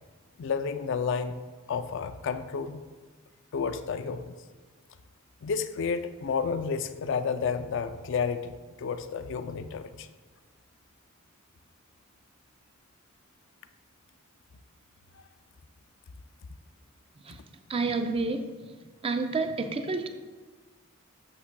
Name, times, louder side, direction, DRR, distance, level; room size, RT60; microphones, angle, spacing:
voice 1, 0.4-1.4 1.7-2.8 3.5-4.4 5.4-10.1 15.1-15.2, left 5 dB, 60° left, 11 dB, 0.4 m, -31 dB
voice 2, 17.7-18.5 19.0-20.1, right 3 dB, 25° right, 7 dB, 0.4 m, -29 dB
8.4 x 7.0 x 2.2 m, 1.4 s
head